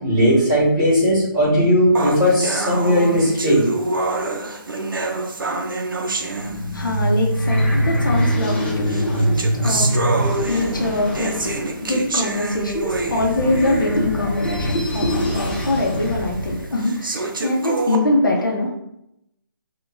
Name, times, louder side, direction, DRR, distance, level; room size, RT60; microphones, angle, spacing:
voice 1, 0.0-3.6, equal, 15° right, -11 dB, 1.2 m, -17 dB
sound 1, 1.9-7.1 7.9-8.0 8.8-14.1 14.5-14.6 15.2-15.3 15.9-16.0 16.8-18.0, right 3 dB, 65° right, 0.5 m, -26 dB
sound 2, 6.1-16.6, equal, 25° left, 0.7 m, -24 dB
voice 2, 6.7-9.9 10.5-18.7, left 2 dB, 60° left, -1 dB, 0.8 m, -23 dB
3.6 x 2.4 x 2.5 m, 0.81 s
hypercardioid pair, 175°, 12 cm